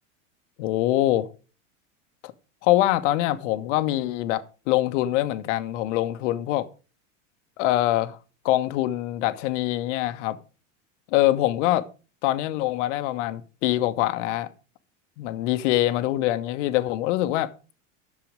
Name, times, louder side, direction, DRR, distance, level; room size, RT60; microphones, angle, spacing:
voice 1, 0.6-1.3 2.2-2.3 2.6-6.7 7.6-8.2 8.4-10.4 11.1-11.9 12.2-14.5 15.2-17.5, left 15 dB, 65° left, 1.1 m, -24 dB
10.5 x 6.9 x 5.0 m
hypercardioid pair, 105°, 39 cm